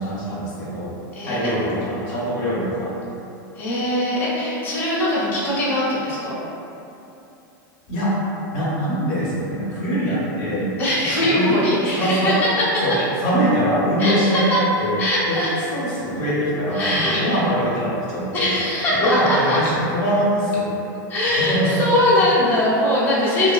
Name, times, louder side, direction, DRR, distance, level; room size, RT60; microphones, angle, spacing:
voice 1, 0.0-0.9 1.2-2.9 7.9-8.2 8.5-10.7 11.2-11.6 11.9-12.4 12.8-13.0 13.2-15.0 15.3-15.4 15.7-18.5 19.0-20.7 21.4-21.9, equal, 60° left, -7 dB, 0.7 m, -22 dB
voice 2, 1.1-1.5 3.6-6.4 10.8-12.8 14.0-14.6 15.0-15.5 16.7-17.4 18.3-19.6 21.1-23.5, left 1 dB, 20° left, -9 dB, 0.7 m, -21 dB
2.4 x 2.3 x 2.3 m, 2.8 s
hypercardioid pair, 120°, 11 cm